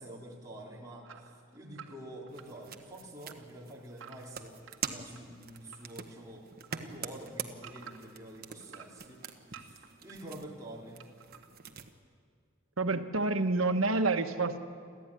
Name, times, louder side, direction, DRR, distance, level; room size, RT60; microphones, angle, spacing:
voice 1, 0.0-4.5 4.9-6.4 6.7-9.2 9.5-11.0, right 1 dB, 15° right, -3 dB, 3.7 m, -47 dB
sound 1, 1.0-2.9 3.2-5.9 6.3-8.2 8.6-10.2 11.0-11.5, right 7 dB, 65° right, 1.9 m, -52 dB
sound 2, 2.3-11.9, right 7 dB, 45° right, 1.3 m, -45 dB
voice 2, 12.8-14.6, right 3 dB, 90° right, 8 dB, 1.3 m, -28 dB
29.5 x 13.0 x 9.9 m, 2.3 s
head